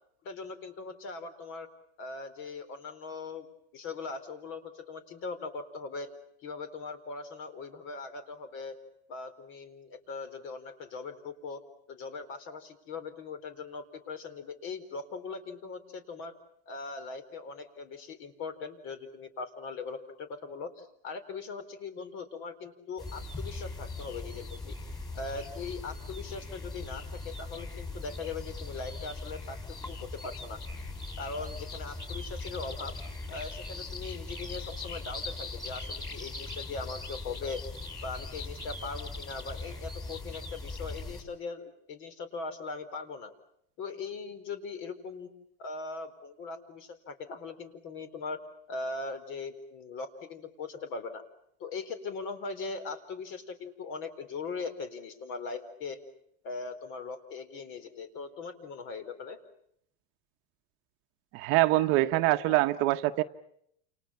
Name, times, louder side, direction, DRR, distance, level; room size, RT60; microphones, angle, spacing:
voice 1, 0.2-1.7 2.0-3.5 3.7-6.1 6.4-8.7 9.1-11.6 11.9-16.3 16.7-24.8 25.1-29.6 29.9-30.6 31.2-33.0 33.3-37.6 38.0-43.3 43.8-45.3 45.6-48.4 48.7-51.2 51.6-56.0 56.4-59.4, left 4 dB, 45° left, 10 dB, 4.1 m, -40 dB
sound 1, 23.0-41.2, left 3 dB, 15° left, 5.6 m, -40 dB
voice 2, 61.3-63.2, right 17 dB, 50° right, 9 dB, 1.2 m, -24 dB
30.0 x 28.5 x 5.7 m, 0.71 s
supercardioid pair, 160°, 29 cm